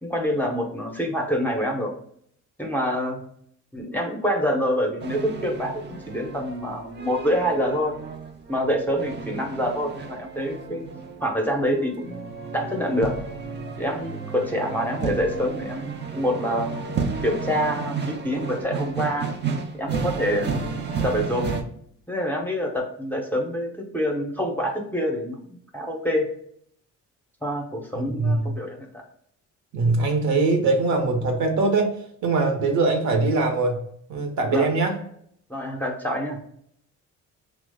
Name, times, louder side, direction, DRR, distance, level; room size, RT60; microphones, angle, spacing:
voice 1, 0.0-1.9 2.6-3.2 3.7-7.9 8.5-10.8 11.2-12.3 12.5-13.1 13.8-16.7 17.2-19.3 19.8-21.5 22.1-25.4 25.7-26.3 27.4-29.0 34.5-34.7 35.5-36.4, equal, 5° left, 0 dB, 0.6 m, -26 dB
sound 1, 5.0-21.6, right 5 dB, 35° right, 0.5 m, -32 dB
voice 2, 28.0-28.5 29.7-31.9 32.2-33.8 34.1-34.9, right 3 dB, 70° right, 3 dB, 0.8 m, -22 dB
3.0 x 2.0 x 3.4 m, 0.67 s
cardioid pair, 90°, 30 cm